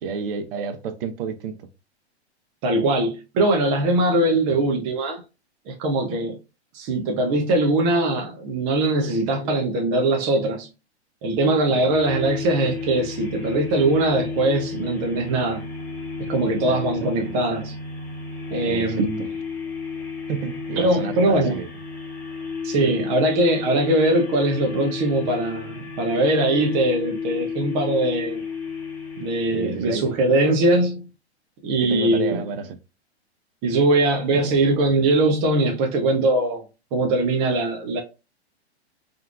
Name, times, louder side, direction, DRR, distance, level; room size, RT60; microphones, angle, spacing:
voice 1, 0.0-1.7 4.5-4.6 11.7-11.9 16.6-17.3 18.6-19.3 20.3-21.7 22.8-23.0 29.5-30.1 31.8-32.8 34.3-34.5, right 6 dB, 55° right, 0.7 m, -31 dB
voice 2, 2.6-5.2 5.7-6.4 6.7-10.7 11.2-15.7 16.3-17.8 18.5-19.3 20.8-21.6 22.6-28.4 29.2-31.0 31.6-32.4 33.6-36.6 36.9-38.0, right 2 dB, 20° right, 0.3 m, -21 dB
sound 1, 11.9-30.2, left 5 dB, 5° left, 1.0 m, -32 dB
3.6 x 2.3 x 2.3 m
hypercardioid pair, 130°, 33 cm